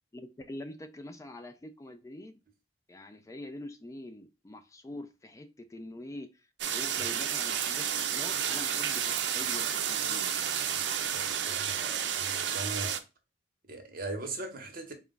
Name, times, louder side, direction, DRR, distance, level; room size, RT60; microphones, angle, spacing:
voice 1, 0.1-2.4 2.9-6.5 6.7-10.7, left 1 dB, 20° left, 0.3 m, -45 dB
sound 1, 6.6-13.0, right 8 dB, 70° right, 0.5 m, -31 dB
voice 2, 11.5-13.0 13.7-14.9, right 2 dB, 55° right, 0.9 m, -39 dB
4.3 x 2.3 x 3.7 m
head